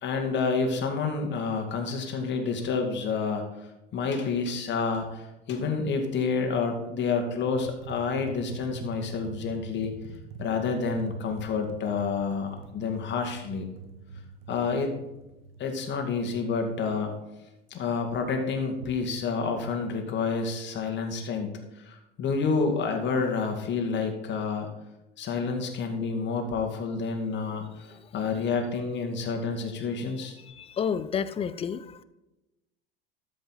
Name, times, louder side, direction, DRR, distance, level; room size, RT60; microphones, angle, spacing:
voice 1, 0.0-9.9 10.4-13.7 14.5-14.9 15.6-17.2 17.7-24.7 25.2-30.4, left 4 dB, 40° left, 4 dB, 2.0 m, -29 dB
sound 1, 7.6-16.4 18.7-19.1, right 4 dB, 70° right, 1.1 m, -44 dB
voice 2, 30.6-32.0, left 7 dB, 20° left, 14 dB, 0.5 m, -30 dB
13.0 x 5.3 x 4.1 m, 0.97 s
hypercardioid pair, 80°, 30 cm